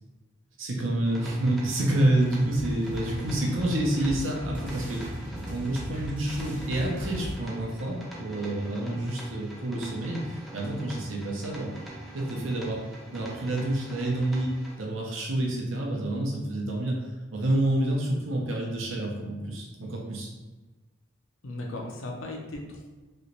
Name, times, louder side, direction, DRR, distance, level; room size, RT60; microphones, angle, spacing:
voice 1, 0.6-5.2 5.5-11.7 12.1-12.8 13.1-17.0 17.3-20.3, right 1 dB, 75° right, -1 dB, 0.7 m, -28 dB
sound 1, 1.0-14.7, right 1 dB, ahead, 0.4 m, -44 dB
sound 2, 1.8-7.3, right 1 dB, 40° right, 0.8 m, -38 dB
voice 2, 8.7-9.0 21.4-22.9, left 1 dB, 80° left, 1 dB, 0.6 m, -37 dB
3.1 x 2.9 x 2.7 m, 1.2 s
head